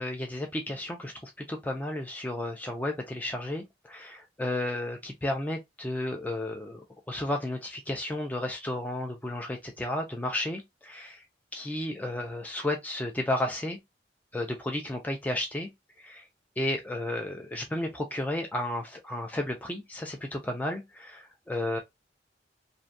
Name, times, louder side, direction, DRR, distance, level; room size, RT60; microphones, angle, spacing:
voice 1, 0.0-11.2 11.5-13.8 14.3-15.7 16.0-16.3 16.6-21.8, left 1 dB, 10° left, 0.3 m, -33 dB
2.5 x 2.2 x 2.5 m
head